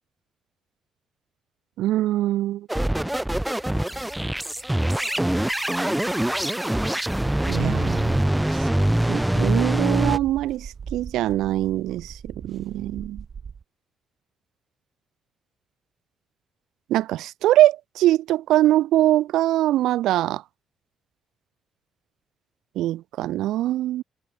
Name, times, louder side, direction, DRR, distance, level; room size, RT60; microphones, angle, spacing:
voice 1, 1.8-2.7 7.5-8.2 9.1-13.2 16.9-20.4 22.8-24.0, right 14 dB, 85° right, 0.6 m, -22 dB
sound 1, 2.7-10.2, right 1 dB, 5° right, 1.3 m, -24 dB
sound 2, 10.7-13.6, right 6 dB, 45° right, 4.4 m, -39 dB
cardioid pair, 90°, 0 cm